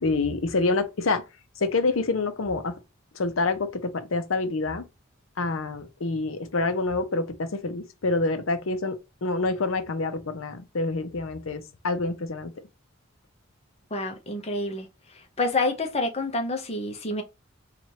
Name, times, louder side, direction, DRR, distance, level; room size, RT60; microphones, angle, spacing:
voice 1, 0.0-1.2 1.6-2.8 3.1-4.8 5.4-12.5, left 3 dB, 80° left, 0.7 m, -27 dB
voice 2, 13.9-14.9 15.4-17.2, left 2 dB, 30° left, 0.8 m, -28 dB
4.3 x 2.5 x 2.9 m
head